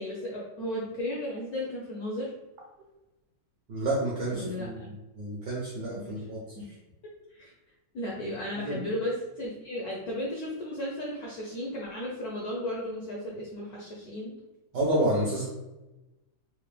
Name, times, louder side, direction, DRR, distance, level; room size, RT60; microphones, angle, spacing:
voice 1, 0.0-2.3 4.3-4.9 5.9-6.3 6.6-6.7 7.0-7.5 7.9-14.3, left 1 dB, 70° left, -4 dB, 0.9 m, -35 dB
voice 2, 3.7-6.4 8.6-8.8 14.7-15.5, right 1 dB, 65° right, -4 dB, 1.1 m, -29 dB
4.4 x 2.2 x 3.2 m, 1.0 s
omnidirectional pair, 2.4 m